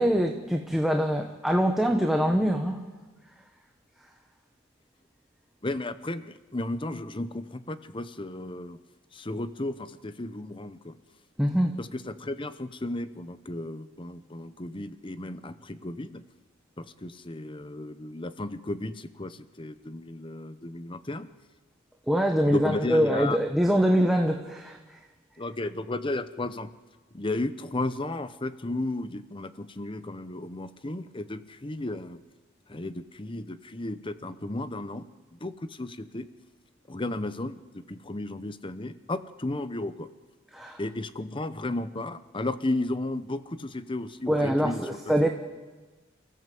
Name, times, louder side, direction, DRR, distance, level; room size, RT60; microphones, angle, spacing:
voice 1, 0.0-2.8 11.4-11.7 22.1-25.0 40.5-40.8 44.3-45.3, equal, ahead, 2 dB, 1.2 m, -24 dB
voice 2, 5.6-8.8 9.1-11.0 11.8-16.2 16.8-21.3 22.5-23.4 25.4-26.7 27.1-32.2 32.7-35.0 35.3-36.3 36.9-40.1 40.8-45.3, left 2 dB, 25° left, 13 dB, 0.8 m, -34 dB
29.0 x 14.5 x 7.8 m, 1.3 s
head